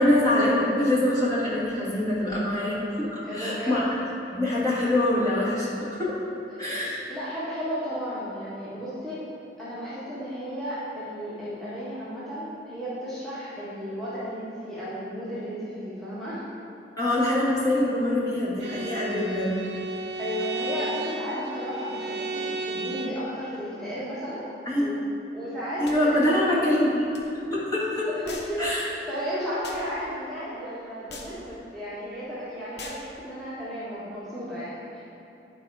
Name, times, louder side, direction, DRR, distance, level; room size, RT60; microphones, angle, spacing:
voice 1, 0.0-3.8 4.3-6.2 6.6-7.0 17.0-19.6 24.7-24.8 25.8-27.0 27.3-28.1 28.6-28.8, left 1 dB, 20° left, -9 dB, 1.9 m, -24 dB
voice 2, 3.2-3.8 6.9-9.2 9.6-16.4 20.2-24.5 24.8-24.9 25.3-26.3 28.1-35.0, equal, ahead, -12 dB, 1.6 m, -34 dB
Bowed string instrument, 18.6-23.3, right 3 dB, 70° right, 0.6 m, -33 dB
sound 1, 25.8-26.0 27.1-27.3 28.3-28.6 29.6-29.9 31.1-31.4 32.8-33.1, left 3 dB, 60° left, 0.9 m, -41 dB
11.0 x 4.9 x 4.9 m, 2.9 s
head